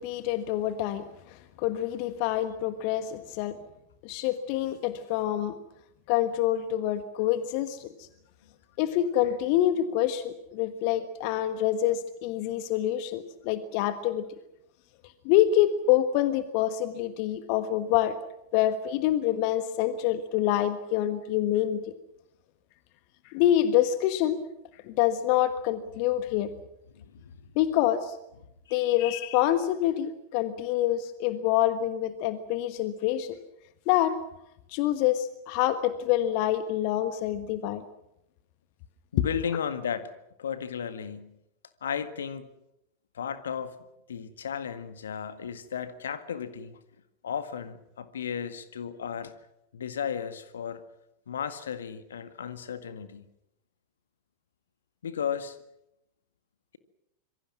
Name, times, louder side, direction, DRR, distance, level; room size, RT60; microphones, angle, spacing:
voice 1, 0.0-3.6 4.0-5.5 6.1-8.1 8.8-14.3 15.2-18.2 18.5-21.9 23.2-24.4 24.8-26.5 27.5-28.2 28.7-33.4 33.9-34.2 34.7-37.8, left 12 dB, 45° left, 11 dB, 1.4 m, -26 dB
voice 2, 39.1-40.1 40.4-41.3 41.8-42.5 43.1-43.8 44.1-46.8 47.2-49.3 49.7-50.8 51.3-53.2 55.0-55.6, left 7 dB, 65° left, 11 dB, 1.8 m, -34 dB
26.5 x 23.5 x 6.1 m, 0.84 s
figure-of-eight pair, 90°, 0 cm